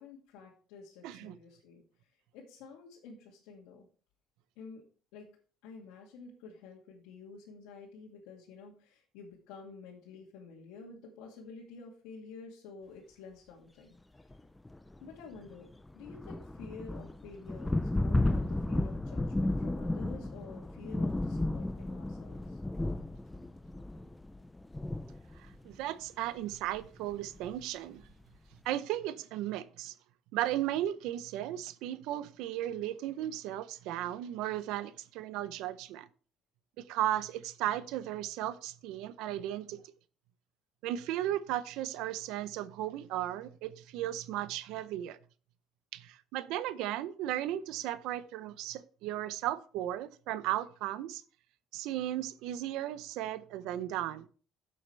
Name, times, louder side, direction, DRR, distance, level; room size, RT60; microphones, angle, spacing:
voice 1, 0.0-3.9 4.6-4.8 5.1-5.3 5.6-14.0 15.0-15.7 15.9-22.6, left 4 dB, 85° left, 2.3 m, -50 dB
voice 2, 1.0-1.4 25.6-28.0 28.6-29.9 30.3-36.1 36.8-39.8 40.8-45.2 45.9-51.2 51.7-54.3, right 13 dB, 80° right, 0.6 m, -35 dB
sound 1, 14.3-14.4 14.6-25.7 26.7-26.8 27.1-27.4, left 2 dB, 10° left, 0.5 m, -33 dB
10.5 x 7.7 x 3.3 m
cardioid pair, 135°, 0 cm